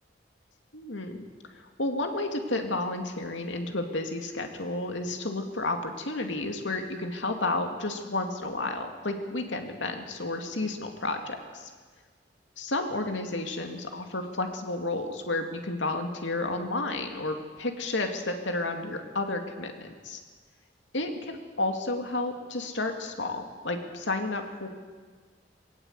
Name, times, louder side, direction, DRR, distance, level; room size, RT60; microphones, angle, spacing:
voice 1, 0.7-1.2 1.5-11.7 12.6-20.2 20.9-24.7, left 2 dB, 80° left, 4 dB, 2.5 m, -31 dB
21.0 x 19.0 x 8.2 m, 1.5 s
head